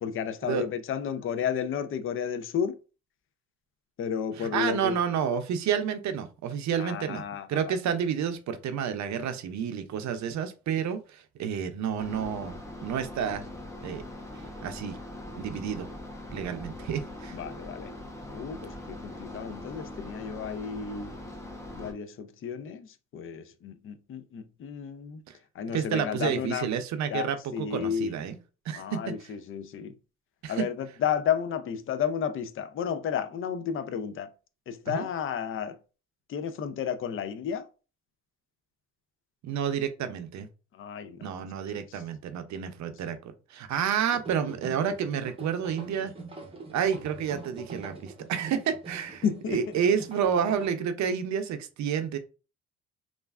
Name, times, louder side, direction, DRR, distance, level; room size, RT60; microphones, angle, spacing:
voice 1, 0.0-2.8 4.0-5.0 6.7-7.8 17.3-17.9 18.3-21.1 21.7-22.9 23.1-25.2 25.6-26.7 27.1-27.3 27.5-28.1 28.7-29.9 30.5-34.3 34.7-35.8 36.3-37.7 40.7-41.3 41.7-42.0 49.2-49.6, left 8 dB, 45° left, 0.4 m, -32 dB
voice 2, 4.4-7.2 7.5-13.4 13.8-14.0 14.6-15.0 15.4-15.9 16.3-17.3 25.3-25.4 25.7-28.4 28.7-29.0 30.4-30.6 34.9-35.1 39.4-40.5 41.2-46.1 46.7-52.2, right 8 dB, 65° right, 0.5 m, -30 dB
sound 1, 12.0-21.9, left 1 dB, 10° left, 0.8 m, -42 dB
sound 2, 44.1-50.7, right 3 dB, 20° right, 0.8 m, -44 dB
3.1 x 2.4 x 2.3 m
cardioid pair, 90°, 30 cm